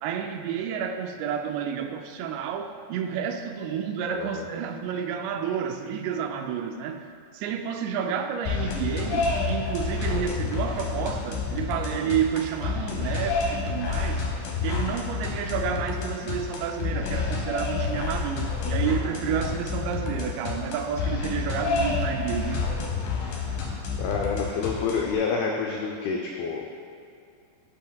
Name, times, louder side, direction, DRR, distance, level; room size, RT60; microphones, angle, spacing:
voice 1, 0.0-14.3 14.6-22.9, right 7 dB, 85° right, 6 dB, 2.7 m, -30 dB
voice 2, 4.1-4.5 24.0-26.7, left 5 dB, 90° left, 0 dB, 2.1 m, -28 dB
sound 1, 8.5-25.2, left 4 dB, 70° left, 2.3 m, -29 dB
16.0 x 5.7 x 2.3 m, 2.4 s
omnidirectional pair, 5.0 m